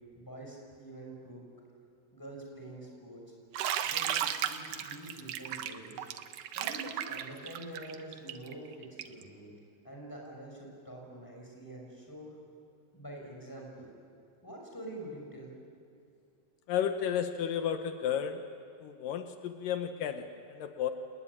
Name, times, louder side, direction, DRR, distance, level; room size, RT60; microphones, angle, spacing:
voice 1, 0.1-1.4 2.1-3.2 3.8-6.1 6.5-9.5 9.8-12.4 12.9-13.9 14.4-15.5, right 1 dB, 5° left, -1 dB, 6.1 m, -46 dB
Bathtub (filling or washing), 3.5-9.2, right 10 dB, 75° right, 2.5 m, -35 dB
voice 2, 16.7-18.4 18.8-20.9, left 9 dB, 80° left, 7 dB, 2.7 m, -33 dB
27.5 x 20.5 x 9.9 m, 2.4 s
omnidirectional pair, 3.9 m